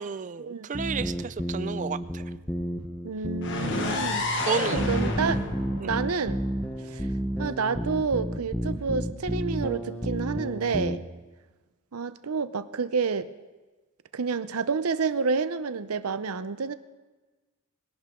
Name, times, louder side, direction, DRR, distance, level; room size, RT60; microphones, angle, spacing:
voice 1, 0.0-2.2 4.5-4.9 5.8-6.0, right 6 dB, 35° right, 16 dB, 0.4 m, -31 dB
sound 1, 0.7-11.0, equal, 5° left, 0.8 m, -31 dB
voice 2, 3.0-4.2 4.7-5.4 5.8-6.4 6.9-7.0 7.4-11.0 11.9-13.3 14.1-16.7, right 5 dB, 85° right, 14 dB, 0.7 m, -29 dB
sound 2, 3.4-7.3, left 2 dB, 55° left, 1.4 m, -31 dB
21.5 x 11.0 x 3.7 m, 1.2 s
head